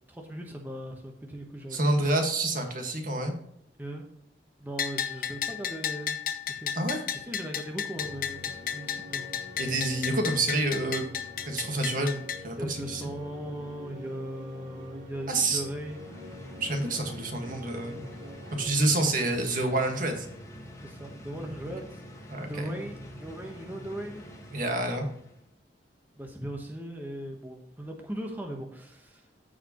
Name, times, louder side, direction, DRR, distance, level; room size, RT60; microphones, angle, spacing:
voice 1, 0.1-1.8 3.8-4.0 4.6-6.2 6.5-9.2 12.5-16.2 19.2-19.3 20.8-24.2 26.1-29.3, right 1 dB, 10° right, 1 dB, 1.1 m, -39 dB
voice 2, 1.7-3.3 6.7-7.0 9.6-11.0 11.4-13.0 15.3-15.6 16.6-18.0 18.5-20.3 22.3-22.7 24.5-25.1, right 2 dB, 50° right, 4 dB, 1.6 m, -28 dB
Bell, 4.8-12.4, left 8 dB, 55° left, 0.9 m, -33 dB
sound 1, 7.9-18.7, left 1 dB, 75° right, 3.4 m, -45 dB
sound 2, 15.5-25.5, equal, 15° left, 1.5 m, -46 dB
14.5 x 5.0 x 3.0 m, 0.72 s
head